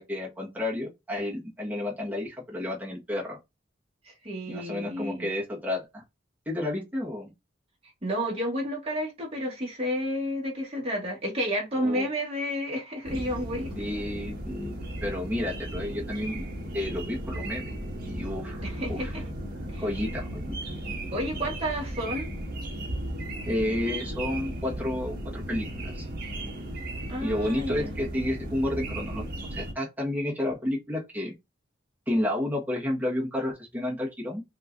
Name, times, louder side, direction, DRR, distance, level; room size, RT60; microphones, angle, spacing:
voice 1, 0.0-3.4 4.5-6.0 6.4-7.3 11.8-12.1 13.7-14.7 15.0-16.5 16.7-17.8 18.1-19.1 19.8-20.6 23.5-26.1 27.2-29.2 29.5-31.3 32.1-34.4, left 1 dB, 10° right, 1.4 m, -31 dB
voice 2, 4.0-5.3 8.0-13.7 18.6-19.2 19.7-19.9 21.1-22.3 27.1-27.9, equal, 30° right, 1.9 m, -31 dB
sound 1, 13.0-29.7, right 1 dB, 50° right, 1.5 m, -35 dB
5.6 x 2.9 x 2.6 m
head